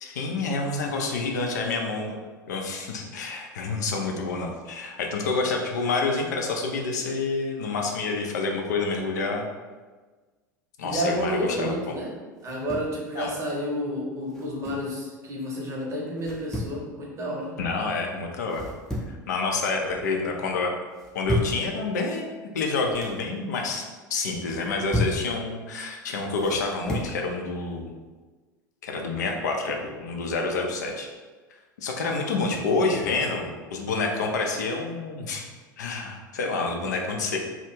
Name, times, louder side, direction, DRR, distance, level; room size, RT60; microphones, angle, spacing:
voice 1, 0.0-2.2 2.5-9.5 10.8-12.0 13.2-13.3 17.6-18.7 19.1-20.7 21.1-22.3 22.5-27.9 28.8-31.1 31.8-35.4 35.8-37.4, left 3 dB, 65° left, 1 dB, 0.4 m, -28 dB
voice 2, 10.8-12.2 12.4-17.5 33.1-33.5, equal, 30° right, -3 dB, 0.7 m, -30 dB
sound 1, 12.4-13.0 14.3-14.9 16.2-16.8 18.5-19.2 19.6-20.1 20.9-21.6 22.7-23.2 24.5-25.2 26.4-27.1, left 1 dB, 5° left, 0.5 m, -32 dB
2.3 x 2.0 x 3.0 m, 1.3 s
figure-of-eight pair, 80°, 10 cm